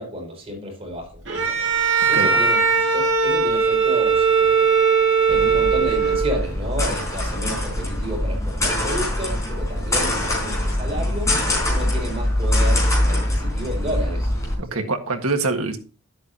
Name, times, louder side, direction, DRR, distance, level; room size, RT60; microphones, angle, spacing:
voice 1, 0.0-1.7 2.1-2.6 2.9-4.8 5.0-14.4 14.7-14.9, equal, 30° right, 4.8 m, -31 dB
Bowed string instrument, 1.3-6.5, right 5 dB, 60° right, 2.6 m, -19 dB
sound 1, 5.3-14.5, left 1 dB, 15° left, 4.0 m, -23 dB
voice 2, 14.6-15.8, right 3 dB, 80° right, 1.6 m, -24 dB
12.0 x 8.0 x 2.8 m
head